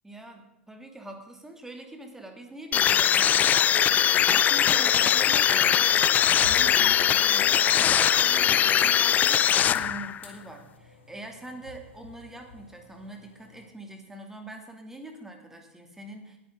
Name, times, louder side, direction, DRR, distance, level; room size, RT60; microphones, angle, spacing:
voice 1, 0.0-16.4, right 1 dB, 5° right, 3 dB, 2.5 m, -44 dB
sound 1, 2.7-10.2, left 9 dB, 25° left, 0.4 m, -21 dB
sound 2, 4.4-13.7, left 3 dB, 80° left, 2.6 m, -49 dB
20.0 x 9.5 x 3.8 m, 0.89 s
figure-of-eight pair, 90°, 6 cm